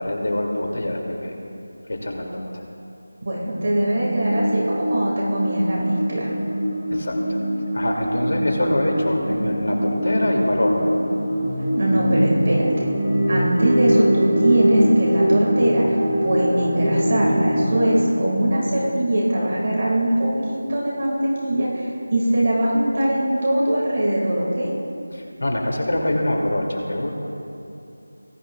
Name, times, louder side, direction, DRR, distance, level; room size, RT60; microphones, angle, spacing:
voice 1, 0.0-1.3 1.9-2.4 6.9-7.4 7.7-10.9 25.1-27.1, left 1 dB, 65° left, 0 dB, 2.4 m, -24 dB
voice 2, 3.2-6.3 11.8-12.9 13.3-24.7, right 1 dB, 35° right, -4 dB, 1.9 m, -21 dB
FX The Gegenschein, 3.6-17.9, equal, ahead, 2.2 m, -23 dB
19.5 x 11.5 x 2.3 m, 2.6 s
figure-of-eight pair, 175°, 0 cm